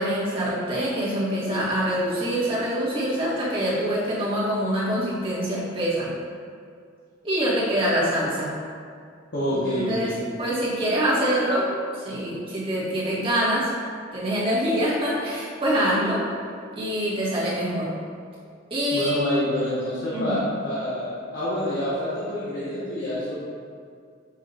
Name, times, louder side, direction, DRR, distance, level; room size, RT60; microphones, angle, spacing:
voice 1, 0.0-6.1 7.2-8.5 9.5-10.1 10.4-13.7 14.1-16.2 16.8-17.9 18.7-19.2 20.1-20.4, equal, 30° right, -8 dB, 1.3 m, -25 dB
voice 2, 9.3-10.2 18.9-23.3, equal, 70° left, -10 dB, 1.0 m, -27 dB
5.4 x 2.5 x 4.0 m, 2.3 s
head